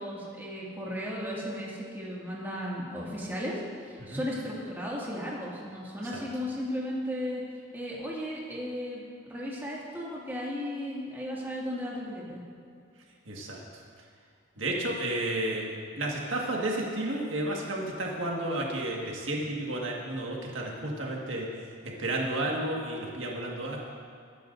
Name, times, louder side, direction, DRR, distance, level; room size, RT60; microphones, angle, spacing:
voice 1, 0.0-7.4 7.7-12.4, equal, 10° right, -6 dB, 2.1 m, -35 dB
voice 2, 13.3-13.6 14.6-15.7 16.0-21.5 21.8-23.8, right 1 dB, 75° right, -2 dB, 1.7 m, -32 dB
20.5 x 10.0 x 2.6 m, 2.3 s
head